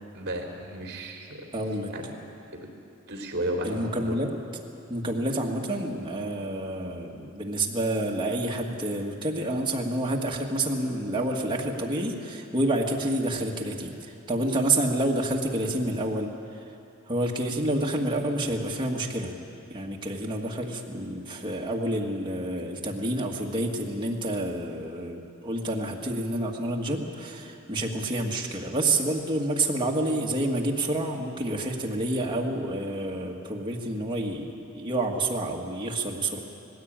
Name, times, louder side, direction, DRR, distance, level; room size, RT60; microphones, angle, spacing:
voice 1, 0.1-1.5 1.9-2.1 2.5-2.7 3.0-4.2, right 1 dB, 50° right, 2 dB, 3.3 m, -33 dB
voice 2, 1.5-1.9 3.6-4.3 4.9-16.6 17.0-19.3 19.7-36.4, right 1 dB, 25° right, -1 dB, 1.9 m, -28 dB
19.0 x 16.0 x 8.9 m, 2.6 s
head